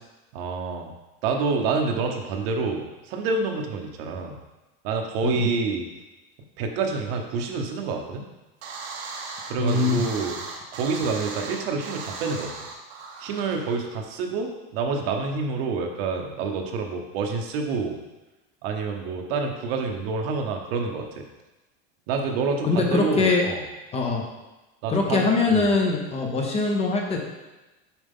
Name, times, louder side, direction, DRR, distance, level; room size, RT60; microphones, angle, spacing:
voice 1, 0.3-0.9 1.2-4.4 4.8-5.8 6.6-8.2 9.5-10.4 10.7-12.5 13.2-18.0 18.6-21.2 22.1-23.6 24.8-25.6, right 4 dB, 65° right, 3 dB, 1.1 m, -27 dB
sound 1, 8.6-14.0, right 4 dB, 85° right, 1.4 m, -37 dB
voice 2, 9.6-10.0 22.6-23.4 23.9-24.2 24.9-27.2, left 3 dB, 20° left, 0 dB, 0.8 m, -22 dB
7.2 x 5.0 x 3.7 m, 1.1 s
supercardioid pair, 160°, 32 cm